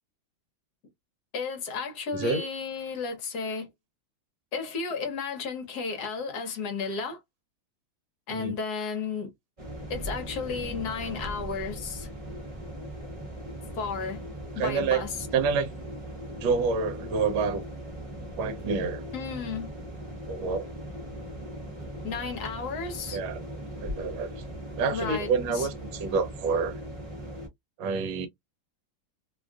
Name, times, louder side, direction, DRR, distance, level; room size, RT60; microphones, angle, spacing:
voice 1, 1.3-3.7 4.5-7.2 8.3-9.3 9.9-12.1 13.8-14.2 14.5-15.1 19.1-19.7 22.0-23.2 24.9-25.7, left 5 dB, 60° left, 1.3 m, -33 dB
voice 2, 2.1-2.4 8.3-8.5 14.6-15.0 15.3-15.7 16.4-17.6 18.4-19.0 20.3-20.7 23.1-23.4 23.8-24.3 24.7-26.8 27.8-28.3, right 5 dB, 75° right, 1.3 m, -27 dB
sound 1, 9.6-27.5, right 1 dB, 35° right, 0.5 m, -39 dB
3.2 x 2.4 x 2.3 m
omnidirectional pair, 2.2 m